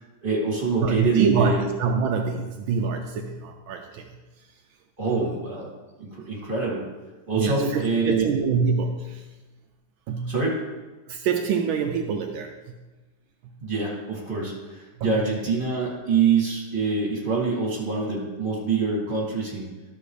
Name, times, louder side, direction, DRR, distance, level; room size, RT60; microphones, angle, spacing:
voice 1, 0.2-1.6 5.0-5.7 6.0-6.8 7.3-8.3 10.2-10.6 13.6-19.7, right 4 dB, 25° right, -4 dB, 2.6 m, -25 dB
voice 2, 0.8-4.1 5.1-5.2 7.3-9.3 10.1-10.3 11.1-12.7 15.0-15.1, right 5 dB, 80° right, 4 dB, 1.4 m, -25 dB
12.0 x 6.6 x 3.3 m, 1.2 s
omnidirectional pair, 2.2 m